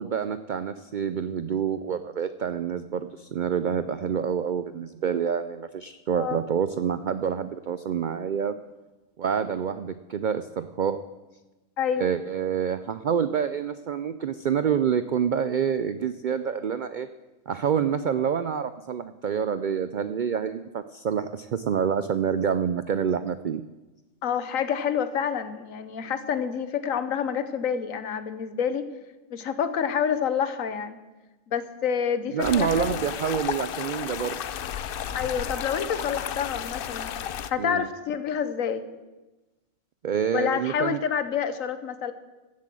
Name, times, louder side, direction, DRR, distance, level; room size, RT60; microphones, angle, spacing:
voice 1, 0.0-8.5 9.2-11.0 12.0-17.1 17.5-23.6 32.3-34.4 37.6-37.9 40.0-41.0, right 7 dB, 70° right, 12 dB, 0.4 m, -27 dB
voice 2, 24.2-28.9 29.3-31.0 31.5-33.0 35.1-37.2 37.5-38.8 40.3-42.1, left 7 dB, 75° left, 12 dB, 1.3 m, -28 dB
sound 1, 32.4-37.5, left 9 dB, 60° left, 0.6 m, -33 dB
15.0 x 7.7 x 7.6 m, 1.1 s
omnidirectional pair, 1.4 m